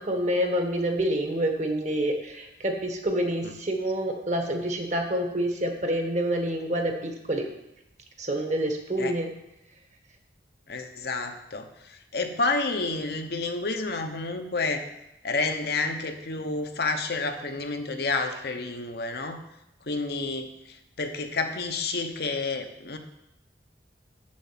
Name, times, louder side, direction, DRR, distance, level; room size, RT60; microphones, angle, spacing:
voice 1, 0.0-7.5 8.2-9.3, right 1 dB, 40° right, 4 dB, 1.4 m, -27 dB
voice 2, 10.7-11.7 12.1-14.9 15.2-19.4 19.9-20.5 21.0-23.0, left 3 dB, 60° left, 6 dB, 0.9 m, -29 dB
7.4 x 7.0 x 7.4 m, 0.87 s
head